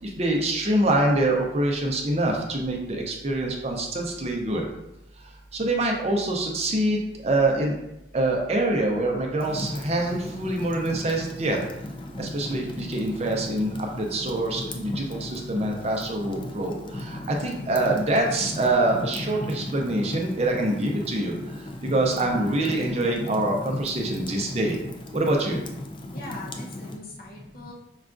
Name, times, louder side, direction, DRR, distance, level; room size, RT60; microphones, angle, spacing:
voice 1, 0.0-4.6 5.5-7.8 8.1-11.6 12.2-21.3 21.9-24.8 25.1-25.6, right 1 dB, 35° right, 1 dB, 0.5 m, -25 dB
Fire, 9.4-27.0, left 1 dB, 30° left, 0.3 m, -36 dB
voice 2, 26.1-27.7, left 2 dB, 55° left, -2 dB, 0.8 m, -41 dB
5.4 x 2.4 x 2.4 m, 0.86 s
head